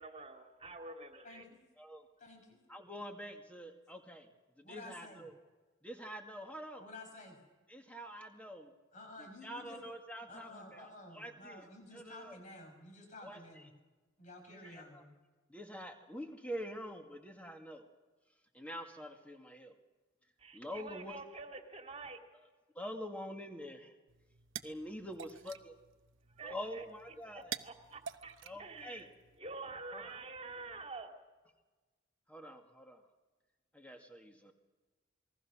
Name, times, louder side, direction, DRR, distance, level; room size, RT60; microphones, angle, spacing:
voice 1, 0.0-1.5 20.4-22.2 26.4-26.9 27.2-29.1 29.4-31.1, right 3 dB, 30° right, 4 dB, 2.3 m, -48 dB
voice 2, 1.2-1.6 2.2-2.6 4.6-5.3 6.8-7.4 8.9-9.9 10.3-13.7 14.2-15.1, left 2 dB, 35° left, 4 dB, 5.8 m, -52 dB
voice 3, 2.7-4.3 4.6-5.3 5.8-6.9 7.7-8.7 9.2-10.9 11.1-11.6 11.9-12.4 13.2-13.6 14.5-15.0 15.5-17.9 18.5-19.7 20.5-21.2 22.8-23.9 24.6-25.7 26.4-27.5 28.4-29.0 29.9-30.2 32.3-33.0 33.7-34.5, equal, 5° left, 4 dB, 2.1 m, -46 dB
sound 1, 24.1-29.4, right 8 dB, 65° right, 1.0 m, -49 dB
28.0 x 20.5 x 6.2 m, 1.3 s
head